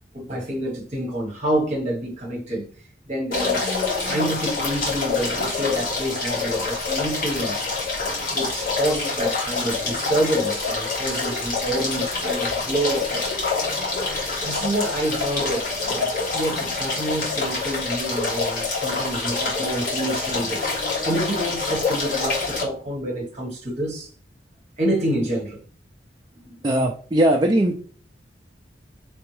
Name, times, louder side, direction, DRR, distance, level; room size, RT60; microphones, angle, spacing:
voice 1, 0.1-2.7 3.1-7.6 8.3-13.5 14.4-24.1 24.8-25.6 26.5-26.6, right 1 dB, 40° right, 1.3 m, -28 dB
sound 1, 3.3-22.6, left 4 dB, 50° left, 1.7 m, -26 dB
voice 2, 26.6-27.8, right 1 dB, 25° right, 0.4 m, -19 dB
4.2 x 3.5 x 3.2 m
head